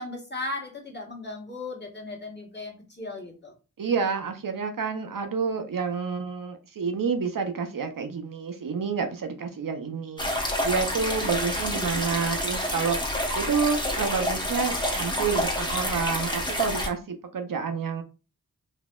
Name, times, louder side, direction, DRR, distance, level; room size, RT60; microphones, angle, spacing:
voice 1, 0.0-3.5, left 2 dB, 30° left, 1.3 m, -36 dB
voice 2, 3.8-10.3 10.6-18.0, right 5 dB, 65° right, 0.6 m, -29 dB
sound 1, 10.2-16.9, left 1 dB, 10° left, 0.9 m, -28 dB
4.0 x 2.7 x 2.2 m
wide cardioid pair, 65°, 36 cm